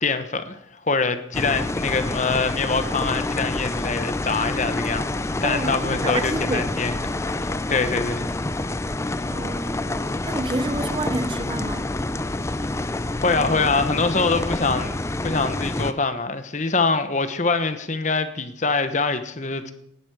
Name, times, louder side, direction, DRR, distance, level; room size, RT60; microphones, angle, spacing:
voice 1, 0.0-0.6 0.9-6.9 7.2-8.3 13.2-15.0 15.2-19.7, left 4 dB, 40° left, 1.1 m, -24 dB
sound 1, 1.3-15.9, left 2 dB, 15° left, 0.5 m, -27 dB
voice 2, 5.4-6.7 9.3-11.9, right 2 dB, 25° right, 0.7 m, -29 dB
18.5 x 11.5 x 4.9 m
head